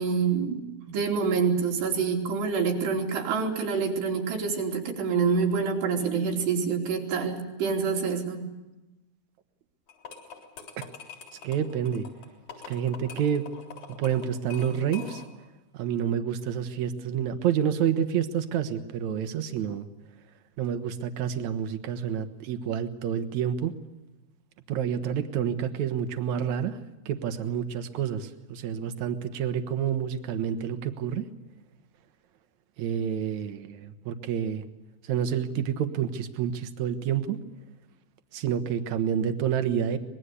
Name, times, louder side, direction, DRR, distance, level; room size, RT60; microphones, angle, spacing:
voice 1, 0.0-8.4, right 5 dB, 85° right, 1 dB, 5.2 m, -27 dB
sound 1, 9.9-15.5, left 6 dB, 45° left, 4.9 m, -45 dB
voice 2, 11.4-12.1 12.7-13.4 14.0-15.2 15.7-19.9 20.6-23.7 24.7-26.8 27.1-31.3 32.8-34.7 35.0-37.4 38.3-40.0, right 8 dB, 60° right, 9 dB, 2.1 m, -28 dB
25.0 x 21.0 x 8.3 m, 1.0 s
omnidirectional pair, 4.7 m